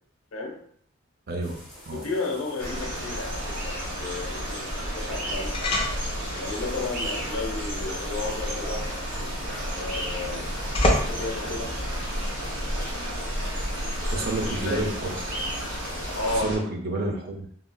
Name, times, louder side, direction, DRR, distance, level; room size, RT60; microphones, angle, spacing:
voice 1, 0.3-0.6 1.9-5.7 6.3-8.9 9.7-10.6 10.9-11.8 14.2-14.8 16.1-16.6, left 3 dB, 85° left, -1 dB, 0.8 m, -33 dB
sound 1, 1.4-16.4, left 1 dB, ahead, 0.8 m, -48 dB
sound 2, 2.6-16.6, equal, 65° right, 1.3 m, -31 dB
sound 3, 5.5-12.9, left 1 dB, 25° left, 0.4 m, -32 dB
voice 2, 14.1-15.1 16.3-17.5, right 2 dB, 50° right, 2 dB, 0.5 m, -29 dB
3.7 x 2.0 x 2.2 m, 0.64 s
head